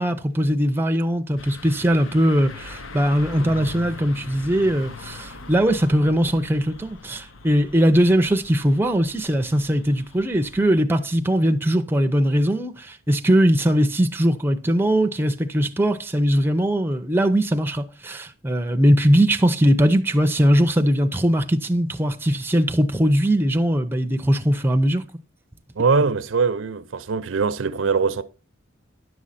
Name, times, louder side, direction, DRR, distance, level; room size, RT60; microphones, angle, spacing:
voice 1, 0.0-25.0, equal, 10° right, 0.6 m, -20 dB
sound 1, 1.4-10.8, left 3 dB, 85° left, 0.8 m, -41 dB
voice 2, 25.8-28.2, right 4 dB, 75° right, 0.6 m, -22 dB
10.5 x 6.3 x 4.1 m
head